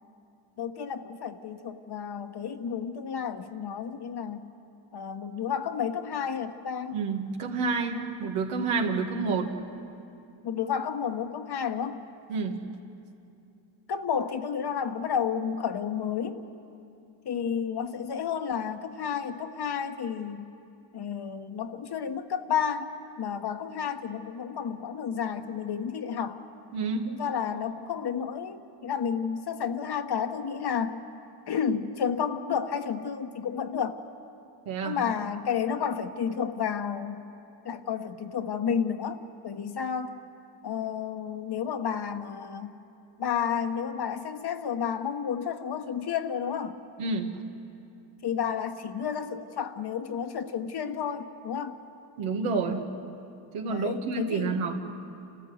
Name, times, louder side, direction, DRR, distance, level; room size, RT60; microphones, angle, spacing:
voice 1, 0.6-4.5 4.9-7.0 10.4-12.0 13.9-16.4 17.2-20.6 20.9-26.4 27.1-31.0 31.5-34.0 34.8-37.2 37.6-40.2 40.6-42.8 43.2-46.8 48.2-51.8 53.6-54.6, left 7 dB, 50° left, 7 dB, 1.3 m, -31 dB
voice 2, 6.9-9.5 12.3-12.6 26.7-27.1 34.7-35.0 47.0-47.3 52.2-52.9 53.5-54.8, right 4 dB, 85° right, 2 dB, 2.2 m, -29 dB
30.0 x 14.0 x 8.1 m, 2.7 s
cardioid pair, 75°, 49 cm